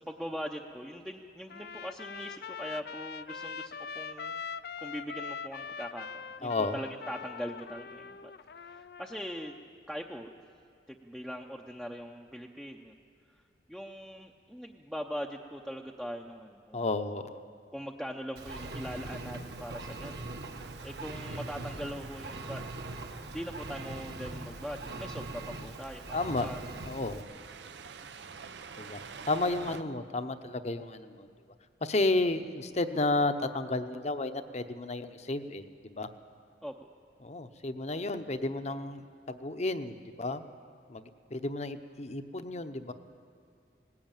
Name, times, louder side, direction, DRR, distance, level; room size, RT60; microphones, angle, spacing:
voice 1, 0.0-4.4 4.8-8.3 8.6-9.6 9.9-10.3 10.9-12.9 13.7-16.9 17.7-20.4 20.8-22.6 23.3-26.6 36.6-36.7, equal, ahead, 0 dB, 0.7 m, -41 dB
Trumpet, 1.5-9.6, left 6 dB, 60° left, 0.5 m, -42 dB
voice 2, 6.4-6.8 16.7-17.4 26.1-26.5 26.8-27.2 28.8-29.0 29.3-31.3 31.8-36.1 37.2-40.4 40.9-42.9, left 2 dB, 40° left, 10 dB, 0.9 m, -32 dB
Engine, 18.4-27.2, right 2 dB, 65° right, 1.5 m, -41 dB
sound 1, 20.5-29.8, right 5 dB, 85° right, 0.7 m, -49 dB
19.5 x 16.0 x 9.0 m, 2.4 s
head